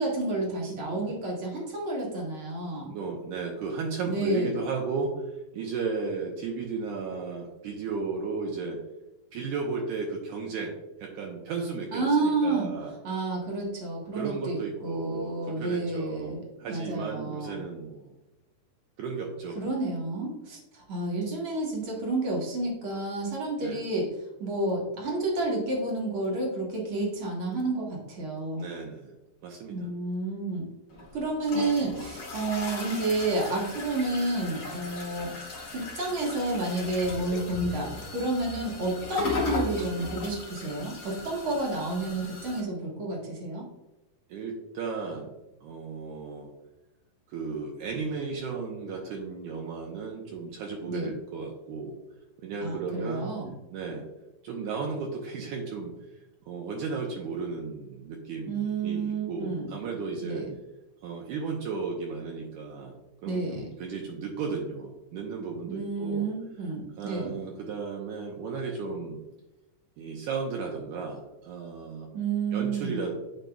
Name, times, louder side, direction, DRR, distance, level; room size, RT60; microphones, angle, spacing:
voice 1, 0.0-2.9 4.0-4.6 11.9-12.7 13.0-16.4 16.7-17.6 19.6-24.1 24.4-28.7 29.7-30.7 31.1-43.7 50.8-51.1 52.6-53.5 58.5-59.7 60.2-60.5 63.3-63.7 65.7-67.3 72.1-73.0, right 2 dB, 50° right, -2 dB, 1.7 m, -30 dB
voice 2, 2.9-8.8 9.3-10.7 11.0-12.9 14.1-18.1 19.0-19.6 23.6-23.8 28.6-29.2 29.4-29.9 30.9-31.1 44.3-45.4 45.6-46.5 47.3-52.0 52.4-53.3 53.7-54.1 54.4-55.9 56.5-60.5 61.0-63.0 63.2-66.3 67.0-69.2 70.0-72.1 72.5-73.1, right 4 dB, 75° right, 0 dB, 2.0 m, -34 dB
sound 1, 30.9-42.6, left 3 dB, 55° left, 1.1 m, -37 dB
9.1 x 5.1 x 2.3 m, 0.99 s
omnidirectional pair, 3.8 m